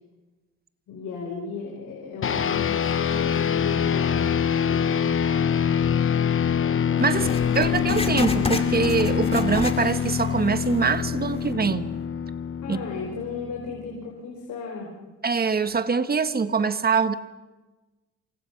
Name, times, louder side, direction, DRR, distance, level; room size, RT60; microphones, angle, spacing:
voice 1, 0.9-4.9 12.6-14.9, left 5 dB, 80° left, -1 dB, 4.7 m, -36 dB
sound 1, 2.2-13.9, left 8 dB, 45° left, 1.2 m, -25 dB
Writing, 7.2-10.2 10.6-10.7 11.4-11.5, left 3 dB, 20° left, 2.5 m, -31 dB
voice 2, 7.5-11.9 12.7-12.8 15.2-17.1, right 5 dB, 30° right, 11 dB, 1.4 m, -24 dB
28.5 x 25.0 x 5.9 m, 1.2 s
cardioid pair, 90°, 30 cm